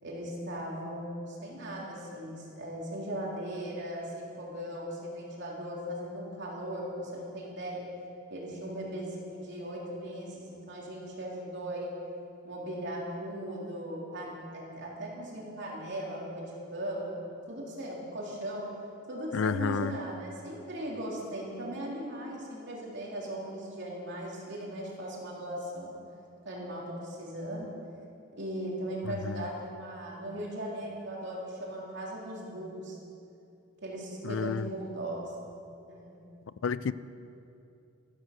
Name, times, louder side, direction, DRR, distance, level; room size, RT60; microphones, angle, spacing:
voice 1, 0.0-7.9 8.3-12.1 12.4-17.1 17.4-18.7 19.1-25.9 26.5-27.7 28.3-33.0 33.8-35.3 35.9-36.2, right 1 dB, 55° right, 3.4 m, -38 dB
voice 2, 19.3-19.9 29.1-29.4 34.2-34.7 36.6-36.9, left 6 dB, 60° left, 0.4 m, -30 dB
14.0 x 12.5 x 6.8 m
head